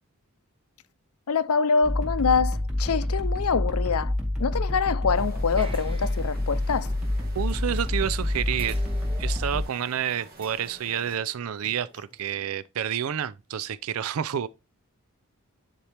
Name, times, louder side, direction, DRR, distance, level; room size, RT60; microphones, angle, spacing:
voice 1, 1.3-4.1 4.4-6.9, left 5 dB, 80° left, 0.6 m, -25 dB
sound 1, 1.8-9.6, left 1 dB, 5° right, 2.3 m, -27 dB
sound 2, 5.1-11.2, right 1 dB, 45° right, 1.5 m, -50 dB
sound 3, 5.6-8.2 8.6-12.3, right 3 dB, 25° right, 1.0 m, -48 dB
voice 2, 7.4-8.8 9.2-14.5, right 9 dB, 75° right, 0.4 m, -29 dB
10.0 x 4.4 x 3.3 m
head